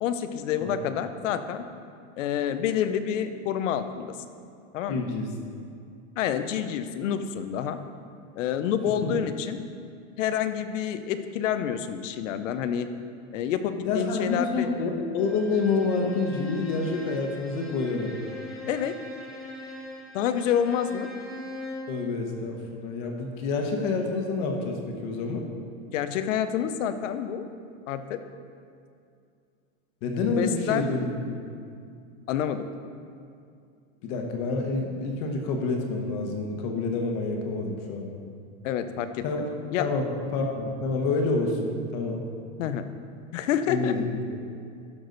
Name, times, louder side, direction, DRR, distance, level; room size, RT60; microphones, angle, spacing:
voice 1, 0.0-1.6 2.2-4.1 4.7-5.0 6.2-7.8 8.4-9.6 10.2-12.9 13.3-14.8 18.7-19.0 20.1-21.1 25.9-27.4 27.9-28.2 30.4-30.9 32.3-32.7 38.6-39.5 39.7-39.9 42.6-42.9 43.3-43.9, left 9 dB, 85° left, 10 dB, 0.8 m, -28 dB
voice 2, 4.9-5.3 9.0-9.1 13.8-18.1 21.9-25.5 30.0-31.4 34.0-38.1 39.2-39.4 39.8-42.3 43.7-44.0, left 3 dB, 40° left, 2 dB, 1.1 m, -28 dB
Bowed string instrument, 15.2-22.0, left 1 dB, ahead, 1.1 m, -41 dB
12.0 x 6.1 x 4.0 m, 2.3 s
supercardioid pair, 170°, 37 cm